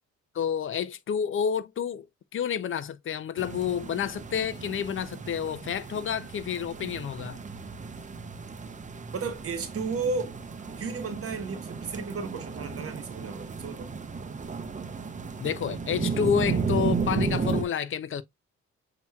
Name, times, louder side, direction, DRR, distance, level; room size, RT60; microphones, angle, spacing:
voice 1, 0.3-2.1 2.3-7.4 15.4-18.2, left 8 dB, 45° left, 0.5 m, -29 dB
sound 1, 3.4-17.6, right 5 dB, 25° right, 0.7 m, -34 dB
voice 2, 9.1-10.4 10.8-13.9, right 4 dB, 50° right, 1.1 m, -33 dB
7.1 x 2.9 x 2.3 m
cardioid pair, 90°, 30 cm